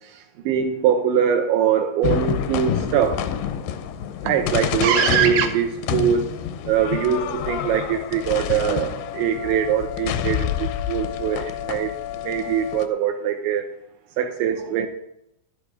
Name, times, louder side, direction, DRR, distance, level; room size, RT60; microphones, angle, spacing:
voice 1, 0.5-3.2 4.2-6.3 6.7-11.9 12.2-13.6 14.2-14.9, right 8 dB, 80° right, 5 dB, 2.8 m, -22 dB
sound 1, 2.0-12.9, left 9 dB, 85° left, 2.3 m, -28 dB
12.0 x 12.0 x 4.8 m, 0.79 s
omnidirectional pair, 5.8 m